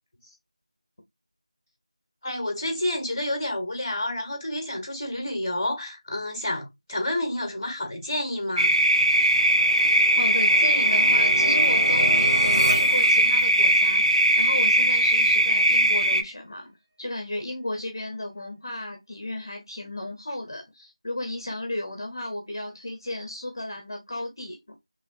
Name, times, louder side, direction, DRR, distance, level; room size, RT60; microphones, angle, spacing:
voice 1, 2.2-8.7, left 1 dB, 20° left, 1.0 m, -29 dB
sound 1, 8.6-16.2, right 1 dB, 90° right, 1.0 m, -20 dB
sound 2, 8.9-14.1, equal, 35° right, 1.4 m, -33 dB
voice 2, 10.2-14.1 14.4-16.7 17.0-24.8, left 1 dB, 40° left, 0.7 m, -34 dB
4.1 x 3.1 x 2.6 m
figure-of-eight pair, 175°, 3 cm